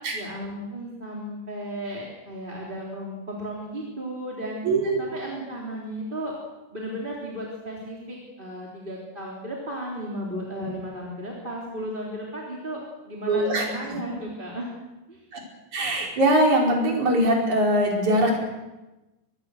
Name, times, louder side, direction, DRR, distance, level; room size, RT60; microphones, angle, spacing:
voice 1, 0.1-4.6 5.0-6.3 6.7-14.7 15.1-15.3, equal, 15° right, -3 dB, 3.3 m, -34 dB
voice 2, 4.6-5.1 13.3-13.6 15.3-15.4 15.7-18.4, right 1 dB, 50° right, -1 dB, 6.0 m, -21 dB
24.5 x 19.5 x 6.5 m, 1.1 s
omnidirectional pair, 4.5 m